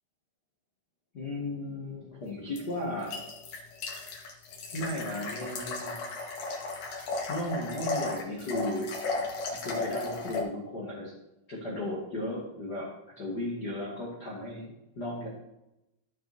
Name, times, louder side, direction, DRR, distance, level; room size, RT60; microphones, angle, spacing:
voice 1, 1.1-3.2 4.7-6.0 6.6-6.7 7.0-11.1 11.5-12.9 13.2-15.3, left 1 dB, 80° left, -4 dB, 0.9 m, -35 dB
sound 1, 2.6-10.4, left 3 dB, 55° left, 2.5 m, -35 dB
14.5 x 6.7 x 3.6 m, 0.90 s
omnidirectional pair, 5.6 m